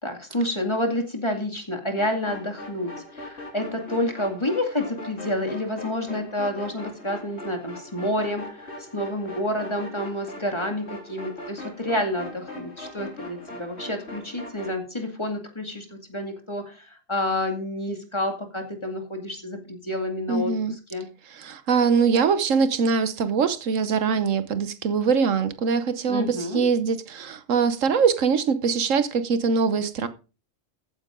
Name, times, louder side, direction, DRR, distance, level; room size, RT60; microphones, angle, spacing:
voice 1, 0.0-21.1 26.1-26.6, left 1 dB, 20° left, 2.3 m, -29 dB
sound 1, 2.0-14.8, left 1 dB, 55° left, 4.0 m, -40 dB
voice 2, 20.3-20.7 21.3-30.1, right 5 dB, 75° right, 1.3 m, -23 dB
14.5 x 9.5 x 3.7 m
omnidirectional pair, 1.3 m